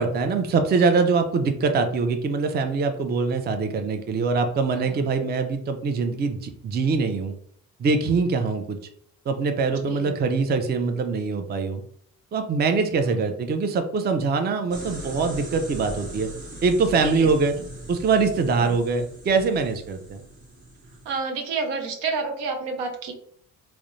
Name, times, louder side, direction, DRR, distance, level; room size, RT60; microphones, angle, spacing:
voice 1, 0.0-7.3 7.8-8.8 9.3-11.8 12.3-16.3 16.6-17.5 17.9-20.2, right 4 dB, 25° right, 7 dB, 0.4 m, -23 dB
voice 2, 4.7-5.1 9.7-10.2 13.1-13.2 17.0-17.7 18.6-18.7 21.1-23.1, right 4 dB, 85° right, 4 dB, 0.7 m, -30 dB
sound 1, 14.7-21.2, right 1 dB, 50° right, 1.0 m, -39 dB
2.4 x 2.1 x 2.9 m, 0.63 s
supercardioid pair, 60°, 39 cm